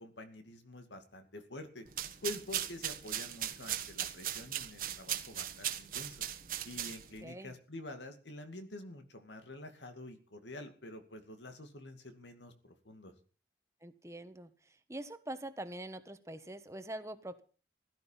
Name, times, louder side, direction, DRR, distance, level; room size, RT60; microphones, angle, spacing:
voice 1, 0.0-1.8 2.2-6.2 6.6-13.1, left 2 dB, 90° left, 7 dB, 2.4 m, -47 dB
sound 1, 1.9-7.2, right 11 dB, 50° right, 1.4 m, -38 dB
voice 2, 7.2-7.5 13.8-17.4, right 1 dB, 15° right, 10 dB, 1.2 m, -44 dB
16.5 x 12.0 x 5.7 m, 0.39 s
head